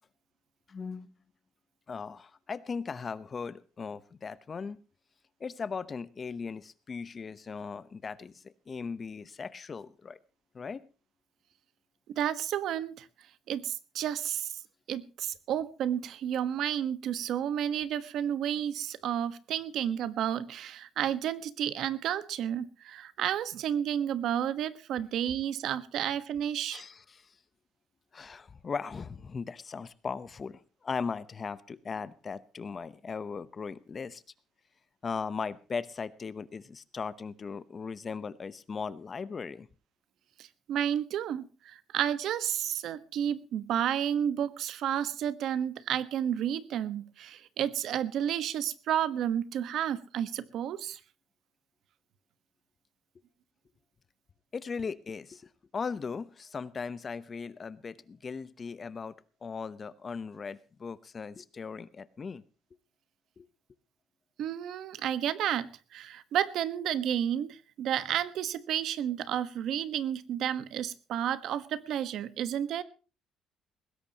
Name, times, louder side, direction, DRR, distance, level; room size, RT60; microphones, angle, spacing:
voice 1, 0.7-1.1 1.9-4.8 5.4-10.2 10.5-10.9 26.7-27.3 28.1-34.2 35.0-39.7 54.5-59.2 59.4-62.4 63.4-63.5, left 5 dB, 30° left, 17 dB, 0.9 m, -38 dB
voice 2, 12.2-13.1 13.5-14.5 14.9-26.8 40.4-51.0 64.4-72.8, right 10 dB, 65° right, 14 dB, 1.3 m, -31 dB
20.0 x 16.5 x 2.9 m, 0.36 s
cardioid pair, 135°, 0 cm